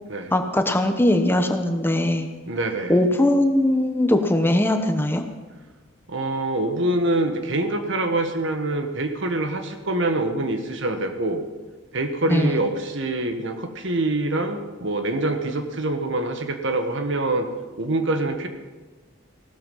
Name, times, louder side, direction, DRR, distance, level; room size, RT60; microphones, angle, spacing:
voice 1, 0.3-2.3 2.9-5.2 12.3-12.6, left 1 dB, 10° left, 6 dB, 1.0 m, -20 dB
voice 2, 2.5-3.0 6.1-11.4 11.9-17.5 17.8-18.5, right 2 dB, 65° right, 7 dB, 1.5 m, -25 dB
16.5 x 13.0 x 5.5 m, 1.3 s
head